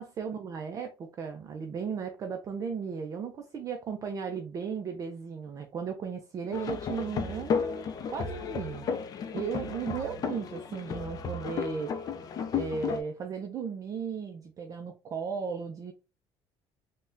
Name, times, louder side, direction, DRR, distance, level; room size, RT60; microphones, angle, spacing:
voice 1, 0.0-7.8 8.1-8.8 9.3-11.9 12.5-15.9, right 6 dB, 35° right, 0.4 m, -36 dB
sound 1, 6.5-13.0, left 6 dB, 35° left, 0.4 m, -33 dB
3.5 x 2.1 x 2.5 m
cardioid pair, 145°, 11 cm